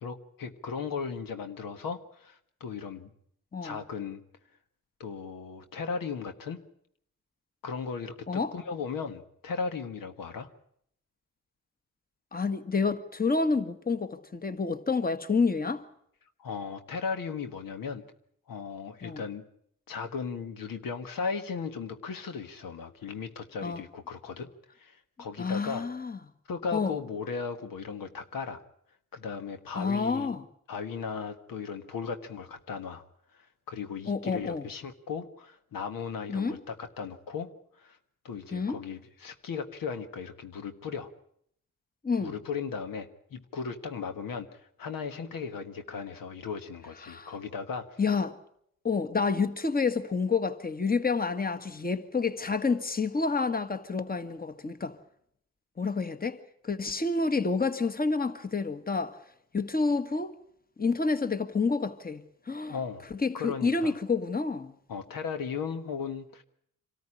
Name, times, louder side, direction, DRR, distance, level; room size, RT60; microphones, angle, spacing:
voice 1, 0.0-3.1 3.6-4.2 5.0-6.6 7.6-10.5 16.4-18.0 18.5-19.4 19.9-24.5 24.7-25.8 26.5-28.6 29.1-30.4 30.7-33.0 33.3-37.5 37.8-38.0 38.2-41.1 42.2-48.0 62.7-63.0 63.3-63.9 64.9-66.4, left 5 dB, 85° left, 1.6 m, -36 dB
voice 2, 12.3-15.8 19.0-19.2 23.6-23.8 25.4-26.2 26.7-27.0 29.7-30.4 34.1-34.6 36.3-36.6 38.5-38.8 42.0-42.3 47.0-47.3 48.0-48.3 48.8-54.9 55.8-59.2 59.5-60.3 60.8-62.2 62.5-62.8 63.1-64.7, left 4 dB, 25° left, 1.7 m, -29 dB
25.5 x 13.5 x 9.9 m
cardioid pair, 70°, 33 cm